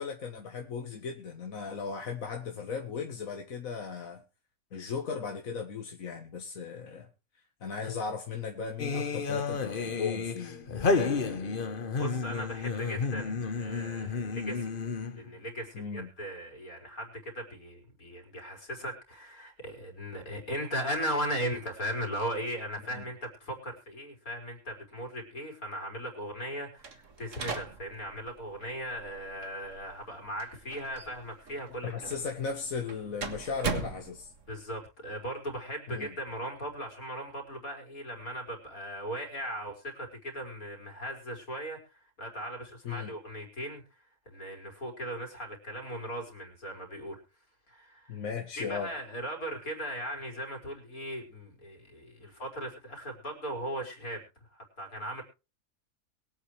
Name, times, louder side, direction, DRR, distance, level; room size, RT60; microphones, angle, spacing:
voice 1, 0.0-4.2 4.7-7.1 7.6-11.4 15.7-16.1 22.9-23.1 31.8-34.3 35.9-36.1 42.8-43.1 48.1-48.9, left 5 dB, 70° left, 1.8 m, -37 dB
sound 1, 8.8-15.3, left 4 dB, 40° left, 1.2 m, -31 dB
voice 2, 11.9-14.8 15.1-31.9 34.5-43.8 44.3-47.2 47.7-48.2 48.6-54.2 54.5-55.2, equal, 90° left, 5.0 m, -38 dB
sound 2, 26.8-34.6, right 4 dB, 60° right, 1.9 m, -40 dB
22.5 x 8.6 x 3.3 m
omnidirectional pair, 1.5 m